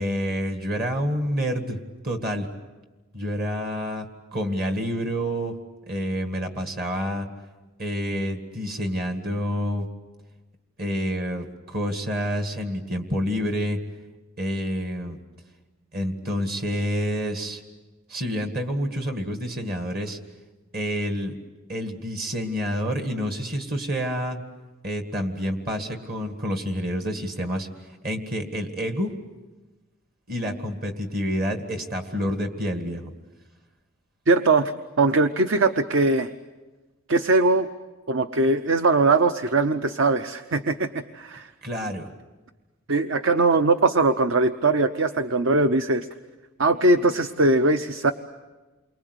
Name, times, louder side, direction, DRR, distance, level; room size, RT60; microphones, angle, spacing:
voice 1, 0.0-1.8 2.0-2.5 3.1-5.6 5.9-7.3 7.8-9.9 10.8-13.8 14.4-15.2 15.9-17.6 18.1-20.2 20.7-21.3 21.7-24.4 24.8-27.7 28.0-29.1 30.3-33.1 41.6-42.1, equal, 45° right, 5 dB, 1.9 m, -28 dB
voice 2, 34.3-34.7 35.0-36.3 37.1-37.7 38.1-41.5 42.9-46.1 46.6-48.1, right 3 dB, 60° right, 10 dB, 0.8 m, -21 dB
29.0 x 23.5 x 8.1 m, 1.2 s
head